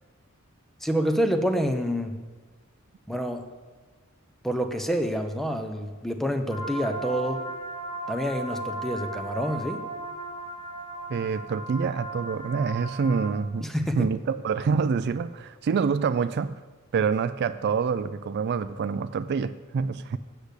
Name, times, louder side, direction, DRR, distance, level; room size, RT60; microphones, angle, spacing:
voice 1, 0.8-2.1 3.1-3.4 4.4-7.4 8.1-9.8 13.6-14.1, equal, ahead, 6 dB, 0.7 m, -27 dB
sound 1, 6.5-13.3, right 2 dB, 30° left, 1.4 m, -36 dB
voice 2, 11.1-13.7 14.0-16.6 16.9-20.2, right 5 dB, 50° right, 13 dB, 0.3 m, -26 dB
8.2 x 6.6 x 8.2 m, 1.4 s
head